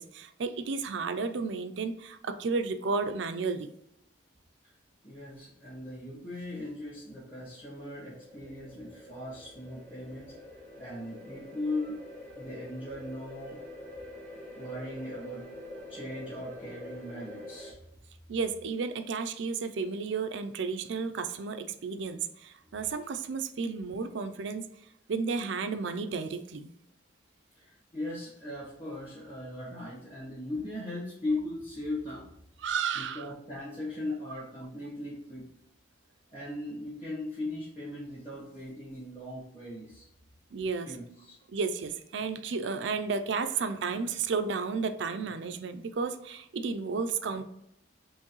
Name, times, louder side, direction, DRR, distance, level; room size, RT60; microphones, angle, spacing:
voice 1, 0.0-3.7 18.3-24.6 25.1-26.7 32.6-33.3 40.5-41.0 41.5-47.4, right 5 dB, 75° right, 0.4 m, -32 dB
voice 2, 5.0-10.4 10.8-12.0 12.3-13.6 14.5-15.5 15.9-17.8 27.5-32.3 32.9-35.5 36.3-40.1 40.8-41.4, left 1 dB, 30° left, 1.5 m, -38 dB
sound 1, 7.0-17.7, left 1 dB, 10° left, 0.8 m, -46 dB
4.5 x 3.1 x 3.0 m
head